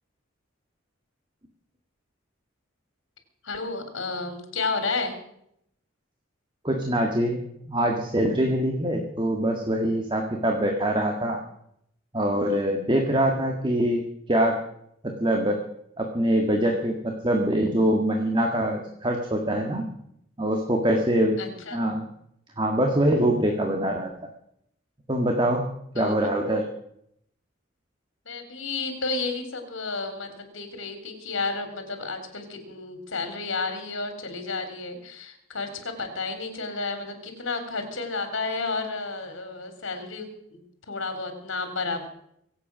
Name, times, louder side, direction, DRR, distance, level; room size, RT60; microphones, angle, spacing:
voice 1, 3.4-5.2 21.4-21.9 25.9-26.1 28.3-42.1, left 3 dB, 70° left, 7 dB, 3.8 m, -32 dB
voice 2, 6.6-11.4 12.1-14.6 15.0-15.6 16.0-19.8 20.4-21.4 21.7-22.1 22.6-24.1 25.1-25.6 26.0-26.6, right 1 dB, 25° right, 2 dB, 1.7 m, -24 dB
25.0 x 8.5 x 6.2 m, 0.73 s
head